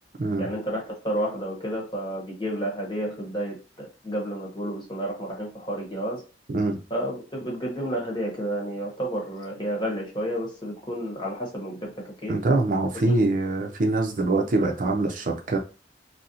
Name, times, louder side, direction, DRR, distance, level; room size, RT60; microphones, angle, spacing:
voice 1, 0.4-6.2 6.9-12.4 13.1-13.2, right 1 dB, 25° left, -2 dB, 1.1 m, -31 dB
voice 2, 12.3-15.6, right 2 dB, 45° right, 2 dB, 0.5 m, -24 dB
4.1 x 2.0 x 2.6 m, 0.33 s
head